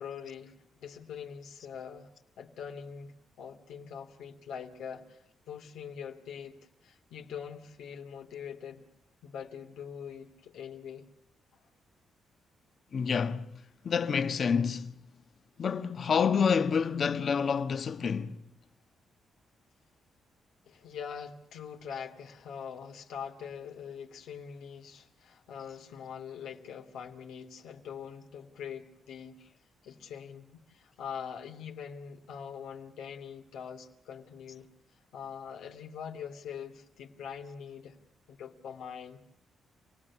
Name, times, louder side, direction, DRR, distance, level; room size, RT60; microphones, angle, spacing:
voice 1, 0.0-2.1 2.4-8.8 9.2-11.1 20.7-29.4 29.8-34.7 35.1-38.0 38.3-39.2, left 7 dB, 90° left, 2.7 m, -43 dB
voice 2, 12.9-13.5 13.8-14.9 15.6-18.4, left 6 dB, 50° left, 1.3 m, -28 dB
28.0 x 18.5 x 8.5 m
cardioid pair, 105°, 0 cm